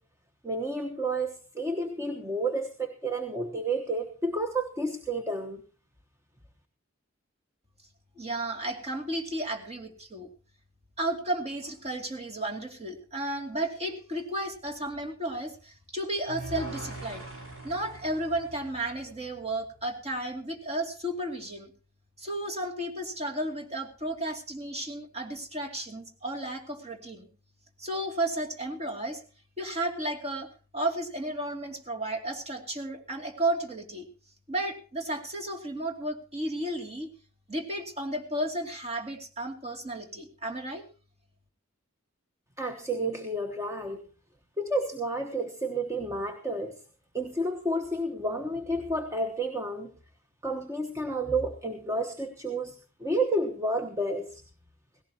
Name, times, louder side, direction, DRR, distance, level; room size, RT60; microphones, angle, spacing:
voice 1, 0.4-5.6 42.6-44.0 44.6-46.7 47.1-49.9 50.4-54.4, right 1 dB, 15° right, 4 dB, 1.1 m, -31 dB
voice 2, 8.2-10.3 11.0-17.3 17.6-21.7 22.2-27.3 27.8-29.2 29.6-30.5 30.7-34.1 34.5-37.1 37.5-40.8, right 1 dB, 30° right, 2 dB, 2.6 m, -33 dB
sound 1, 16.3-19.5, right 1 dB, 75° right, 5.8 m, -42 dB
17.5 x 17.0 x 2.9 m, 0.37 s
head